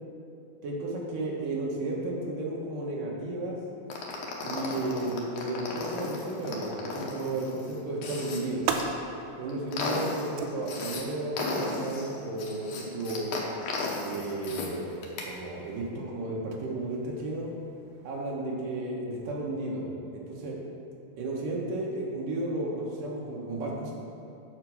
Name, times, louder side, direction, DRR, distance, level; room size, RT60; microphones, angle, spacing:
voice 1, 0.6-3.6 4.4-8.6 9.4-13.3 14.0-17.5 18.0-20.6 21.2-23.9, right 2 dB, 65° right, -3 dB, 2.6 m, -33 dB
sound 1, 3.9-8.8 9.3-11.0 11.4-14.7 15.0-15.3, left 3 dB, 85° left, 1.5 m, -35 dB
sound 2, 7.9-18.4, right 6 dB, 85° right, 2.5 m, -41 dB
8.1 x 5.0 x 6.4 m, 2.9 s
omnidirectional pair, 4.4 m